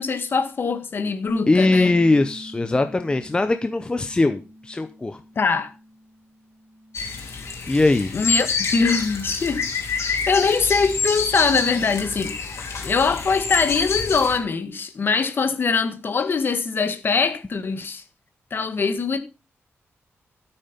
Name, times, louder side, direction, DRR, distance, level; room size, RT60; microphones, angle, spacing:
voice 1, 0.0-1.9 5.4-5.7 8.1-8.5 8.7-9.6 9.9-12.3 12.8-18.0 18.5-19.2, left 5 dB, 45° left, 1.7 m, -22 dB
Bass guitar, 1.3-7.5, equal, 15° right, 2.3 m, -42 dB
voice 2, 1.5-5.2 7.7-8.1, left 2 dB, 20° left, 0.8 m, -20 dB
sound 1, 6.9-14.4, left 4 dB, 65° left, 4.3 m, -27 dB
13.0 x 8.8 x 5.2 m
wide cardioid pair, 160°, 5 cm